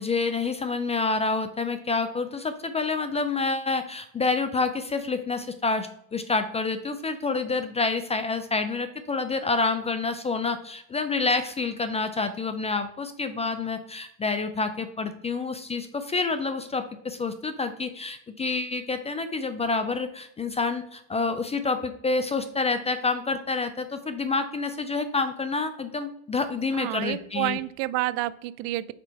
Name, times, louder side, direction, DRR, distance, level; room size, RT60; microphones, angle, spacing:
voice 1, 0.0-27.6, left 3 dB, 15° left, 10 dB, 0.3 m, -28 dB
voice 2, 26.7-28.9, right 17 dB, 75° right, 17 dB, 0.6 m, -29 dB
5.1 x 4.4 x 5.6 m, 0.74 s
supercardioid pair, 120°, 43 cm